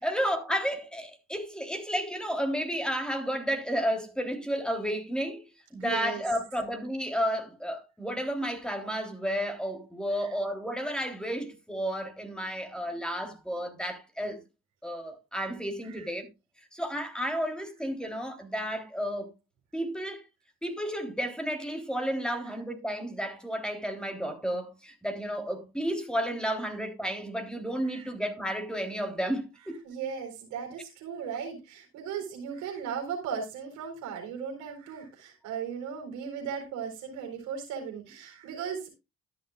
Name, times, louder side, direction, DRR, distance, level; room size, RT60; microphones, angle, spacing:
voice 1, 0.0-14.4 14.8-16.3 16.7-19.3 19.7-20.2 20.6-29.8, equal, 5° left, 3.4 m, -32 dB
voice 2, 5.8-6.2 10.2-10.3 15.8-16.1 27.8-28.1 29.8-38.9, right 7 dB, 70° right, 4.2 m, -37 dB
13.5 x 11.0 x 2.4 m
hypercardioid pair, 50°, 31 cm